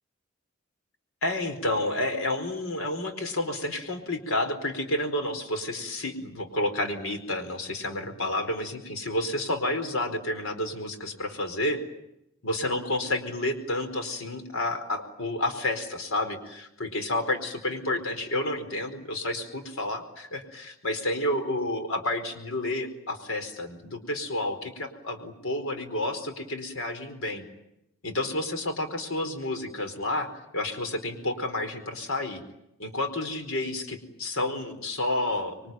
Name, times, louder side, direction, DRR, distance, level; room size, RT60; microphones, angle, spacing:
voice 1, 1.2-11.8 12.4-27.5 28.0-30.3 30.5-32.4 32.8-35.7, left 1 dB, 90° left, 7 dB, 4.5 m, -30 dB
27.0 x 23.0 x 9.3 m, 0.83 s
head